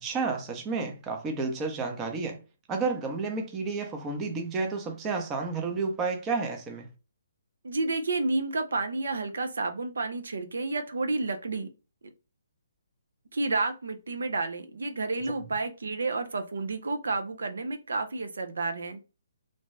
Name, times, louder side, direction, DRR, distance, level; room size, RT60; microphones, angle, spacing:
voice 1, 0.0-2.4 2.7-6.9, right 4 dB, 15° right, 0.6 m, -31 dB
voice 2, 7.6-11.7 13.3-19.0, right 3 dB, 80° right, 0.5 m, -30 dB
2.6 x 2.2 x 3.2 m
hypercardioid pair, 155°, 0 cm